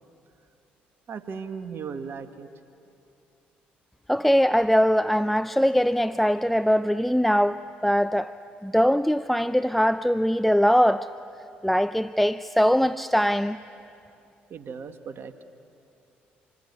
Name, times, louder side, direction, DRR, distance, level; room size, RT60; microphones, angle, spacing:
voice 1, 1.1-2.5 14.5-15.4, right 6 dB, 55° right, 1.8 m, -37 dB
voice 2, 4.1-8.3 8.6-11.1 11.6-13.6, equal, 5° left, 0.6 m, -21 dB
27.0 x 22.0 x 9.6 m
hypercardioid pair, 55°, 5 cm